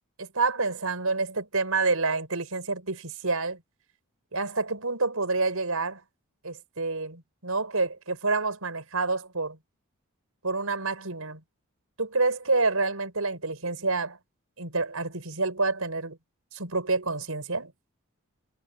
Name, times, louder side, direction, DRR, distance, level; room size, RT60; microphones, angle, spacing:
voice 1, 0.2-3.6 4.3-6.0 6.4-9.6 10.4-11.4 12.0-14.2 14.6-16.2 16.5-17.7, right 3 dB, 80° right, 5.0 m, -28 dB
head